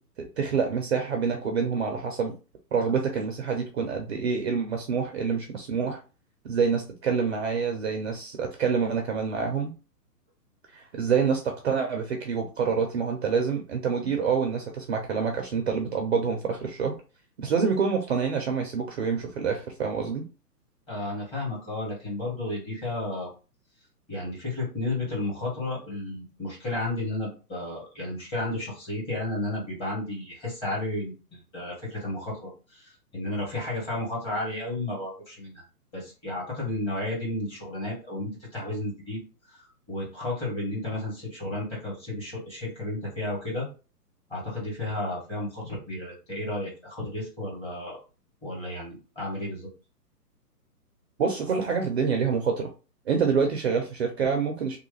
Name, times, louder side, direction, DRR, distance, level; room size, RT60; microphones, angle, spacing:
voice 1, 0.2-2.3 2.7-6.0 6.4-9.7 10.7-17.0 17.4-20.2 51.2-52.7 53.1-54.8, right 6 dB, 45° right, 3 dB, 0.5 m, -27 dB
voice 2, 20.9-23.3 24.1-35.6 35.9-39.2 39.5-39.6 39.9-43.7 44.3-48.0 48.4-49.7, left 2 dB, 10° left, -5 dB, 1.3 m, -32 dB
3.1 x 2.2 x 3.1 m, 0.33 s
hypercardioid pair, 145°, 48 cm